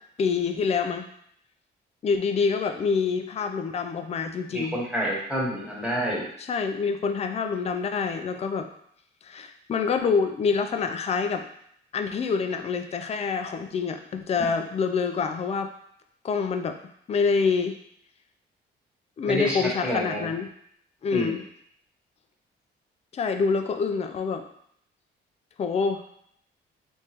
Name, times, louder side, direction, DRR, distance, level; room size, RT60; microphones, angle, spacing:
voice 1, 0.2-1.1 2.0-4.8 6.4-8.7 9.2-11.5 11.9-15.7 16.2-16.8 17.1-17.7 19.2-20.5 21.0-21.4 23.1-24.4 25.6-26.0, left 5 dB, 30° left, 6 dB, 0.4 m, -26 dB
voice 2, 4.5-6.3 19.2-20.3 21.1-21.4, equal, 5° right, -5 dB, 1.4 m, -28 dB
3.5 x 3.1 x 2.9 m, 0.68 s
cardioid pair, 90°, 20 cm